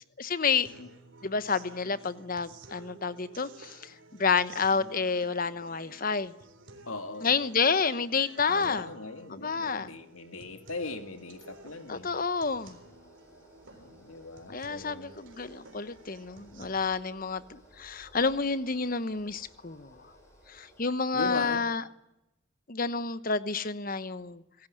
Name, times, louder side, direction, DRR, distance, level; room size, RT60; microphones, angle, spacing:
voice 1, 0.2-0.7 1.2-3.9 4.2-6.3 7.2-8.9 9.3-9.9 11.9-12.8 14.5-20.0 20.5-21.8 22.7-24.4, left 5 dB, 40° left, 14 dB, 1.0 m, -29 dB
sound 1, 0.7-16.7, right 3 dB, 60° right, 3.9 m, -53 dB
voice 2, 6.9-7.3 8.5-12.1 13.8-15.1 21.1-21.6, left 3 dB, 80° left, 8 dB, 2.6 m, -39 dB
sound 2, 10.0-21.0, equal, 15° left, 7.8 m, -59 dB
26.5 x 16.5 x 9.9 m, 0.89 s
head